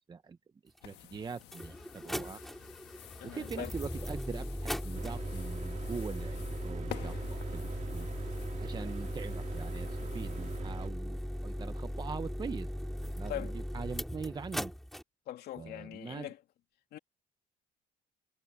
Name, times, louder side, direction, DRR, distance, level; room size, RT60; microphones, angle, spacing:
voice 1, 0.6-2.4 3.2-8.1 8.6-11.2 11.4-12.7 13.0-14.7 15.6-16.3, right 5 dB, 25° right, 0.8 m, -42 dB
sound 1, 0.8-10.6, left 16 dB, 90° left, 1.5 m, -51 dB
sound 2, 0.8-0.9 1.4-15.0, equal, ahead, 4.2 m, -38 dB
voice 2, 3.2-3.7 8.8-8.9 13.3-13.5 15.3-16.4 16.9-17.0, left 12 dB, 70° left, 2.8 m, -41 dB
Mechanical fan, 4.9-10.9, right 8 dB, 45° right, 2.2 m, -45 dB
cardioid pair, 110°, 17 cm